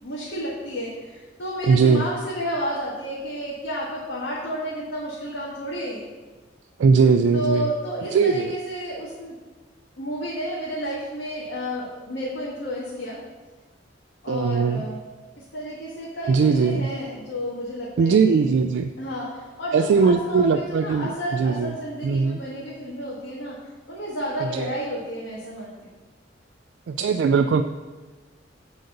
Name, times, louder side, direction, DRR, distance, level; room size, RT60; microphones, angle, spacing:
voice 1, 0.0-6.0 7.3-9.3 10.0-13.2 14.2-15.0 15.5-18.5 19.0-23.6 23.9-25.9, equal, 90° left, -7 dB, 1.7 m, -31 dB
voice 2, 1.7-2.1 6.8-7.7 8.1-8.5 14.3-14.8 16.3-16.9 18.0-18.9 19.7-21.7 22.0-22.4 24.4-24.8 26.9-27.6, right 5 dB, 80° right, 6 dB, 0.3 m, -20 dB
7.8 x 4.0 x 6.5 m, 1.3 s
head